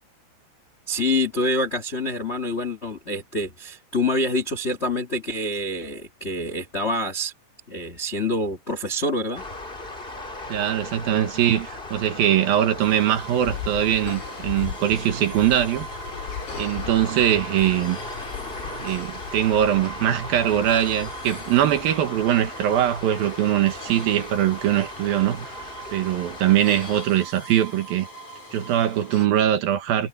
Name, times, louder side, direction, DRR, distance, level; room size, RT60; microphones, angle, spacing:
voice 1, 0.9-7.3 7.7-9.4, left 1 dB, 65° left, 0.6 m, -26 dB
sound 1, 9.3-27.0, left 2 dB, 20° left, 1.7 m, -38 dB
voice 2, 10.5-15.9 16.6-18.0 18.7-25.6 25.9-28.1 28.5-30.1, right 11 dB, 70° right, 3.0 m, -22 dB
sound 2, 12.8-29.3, right 1 dB, 50° left, 8.1 m, -41 dB
sound 3, 13.5-19.6, left 11 dB, 80° left, 3.1 m, -37 dB
omnidirectional pair, 4.7 m